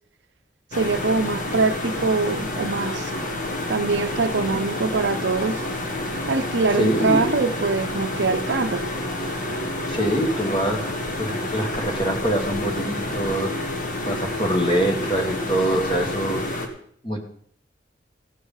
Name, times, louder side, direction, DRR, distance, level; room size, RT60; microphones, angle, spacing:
sound 1, 0.7-16.7, left 1 dB, 45° left, 1.5 m, -29 dB
voice 1, 0.7-3.1 3.7-5.6 6.3-8.8, right 3 dB, 70° right, 11 dB, 0.6 m, -23 dB
voice 2, 6.7-7.3 9.9-10.9 11.2-13.6 14.0-16.4 17.0-17.2, right 1 dB, 30° left, 4 dB, 1.7 m, -24 dB
15.0 x 6.3 x 5.5 m, 0.62 s
head